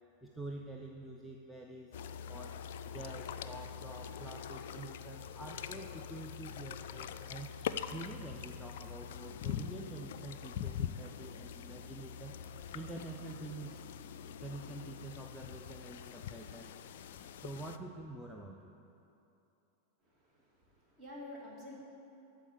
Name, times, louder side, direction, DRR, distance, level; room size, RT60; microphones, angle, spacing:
voice 1, 0.2-2.0 2.3-2.6 2.8-7.6 7.9-12.4 12.7-13.8 14.2-16.7 17.4-18.7, right 2 dB, ahead, 0 dB, 0.6 m, -47 dB
sound 1, 1.9-17.8, left 8 dB, 55° left, 0.4 m, -44 dB
voice 2, 20.0-21.8, left 1 dB, 25° right, -4 dB, 2.7 m, -50 dB
12.5 x 4.6 x 8.5 m, 2.8 s
figure-of-eight pair, 90°, 0 cm